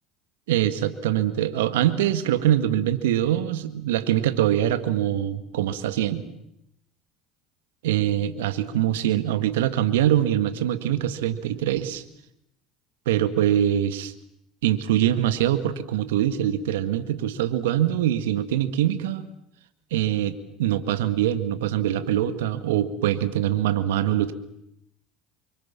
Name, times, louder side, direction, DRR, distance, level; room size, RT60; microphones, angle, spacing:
voice 1, 0.5-6.3 7.8-12.0 13.1-14.1 14.6-19.3 19.9-24.3, right 11 dB, 80° right, 10 dB, 1.9 m, -23 dB
27.5 x 24.5 x 7.5 m, 0.79 s
hypercardioid pair, 75°, 0 cm